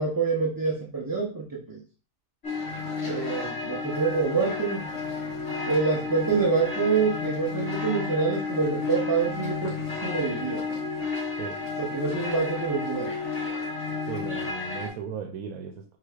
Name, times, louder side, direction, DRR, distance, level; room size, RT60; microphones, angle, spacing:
voice 1, 0.0-1.8 3.0-4.9 5.7-9.7 10.0-10.6 11.8-13.1, right 5 dB, 25° right, -3 dB, 0.4 m, -26 dB
sound 1, 2.4-14.9, left 4 dB, 60° left, 1.8 m, -32 dB
voice 2, 14.1-16.0, right 6 dB, 90° right, 4 dB, 1.0 m, -36 dB
4.9 x 3.8 x 2.3 m, 0.37 s
omnidirectional pair, 1.4 m